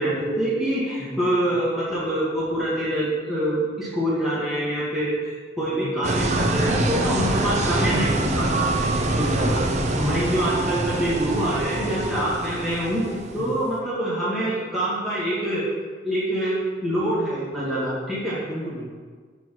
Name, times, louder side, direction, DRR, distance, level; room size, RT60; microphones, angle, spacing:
voice 1, 0.0-8.7 9.1-9.6 9.9-13.0 13.3-15.6 16.0-18.4, right 1 dB, ahead, -10 dB, 1.9 m, -25 dB
voice 2, 1.0-1.6 5.7-6.6 13.4-13.6 18.4-18.9, right 1 dB, 20° left, -4 dB, 1.6 m, -37 dB
sound 1, 6.0-13.5, right 2 dB, 40° right, 0.7 m, -25 dB
6.9 x 4.6 x 5.8 m, 1.5 s
head